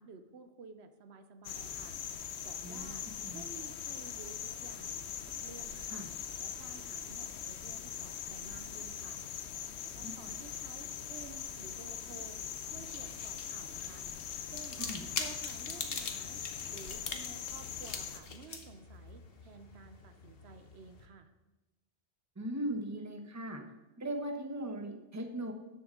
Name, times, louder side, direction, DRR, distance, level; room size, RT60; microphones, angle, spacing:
voice 1, 0.0-2.0 2.4-6.1 6.4-9.2 9.8-12.4 12.7-14.1 14.5-14.8 15.2-16.4 16.7-21.3, right 5 dB, 75° right, 9 dB, 1.0 m, -53 dB
sound 1, 1.4-18.2, left 8 dB, 80° left, 1.0 m, -42 dB
voice 2, 10.0-10.3 14.8-15.0 22.4-23.6 24.0-25.5, right 1 dB, 15° right, 5 dB, 0.9 m, -38 dB
sound 2, 12.6-21.1, left 5 dB, 60° left, 1.2 m, -44 dB
13.0 x 7.1 x 3.7 m, 1.1 s
omnidirectional pair, 1.1 m